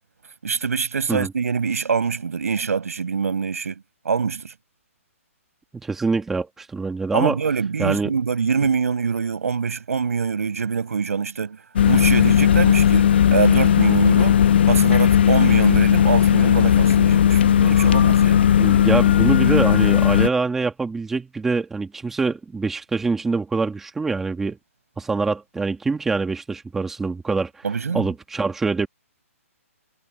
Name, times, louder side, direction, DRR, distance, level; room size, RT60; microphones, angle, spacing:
voice 1, 0.4-4.5 7.1-11.6 11.9-14.4 14.7-18.4 27.6-28.1, right 5 dB, 85° right, 7.4 m, -24 dB
voice 2, 5.7-7.4 7.8-8.2 18.6-24.6 25.0-27.6 27.9-28.9, right 4 dB, 5° right, 1.8 m, -24 dB
sound 1, 11.8-20.3, left 9 dB, 45° left, 1.0 m, -16 dB
hypercardioid pair, 175°, 8 cm